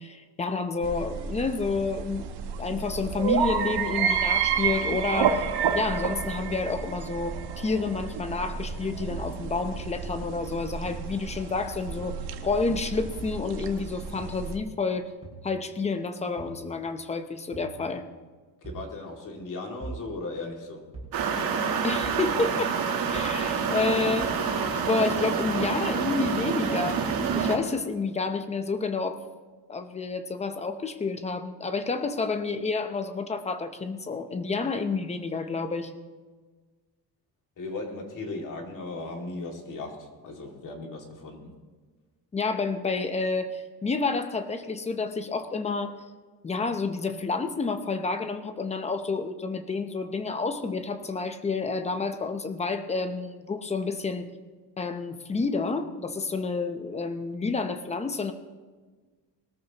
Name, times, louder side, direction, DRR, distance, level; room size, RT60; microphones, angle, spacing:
voice 1, 0.0-2.3 2.6-5.4 5.7-12.2 12.4-15.1 15.4-18.1 21.8-22.8 23.1-24.6 24.9-27.0 27.4-29.2 29.7-35.9 42.3-45.9 46.4-54.3 54.8-58.3, left 4 dB, 15° left, 8 dB, 0.7 m, -29 dB
sound 1, 0.8-14.6, right 7 dB, 80° right, 1.2 m, -30 dB
sound 2, 8.7-8.8 9.7-9.8 10.8-10.9 12.0-12.1 13.0-13.2 14.2-14.4 15.2-15.4 16.4-16.6 17.5-17.7 18.6-18.9 19.8-20.0 20.9-21.2 22.0-22.2 23.1-23.4 24.2-24.4, right 4 dB, 15° right, 5.6 m, -42 dB
voice 2, 18.6-20.8 37.6-41.5, left 2 dB, 50° left, 1 dB, 2.4 m, -37 dB
sound 3, 21.1-27.6, right 6 dB, 60° right, 2.0 m, -27 dB
21.0 x 13.5 x 3.0 m, 1.4 s
cardioid pair, 180°, 39 cm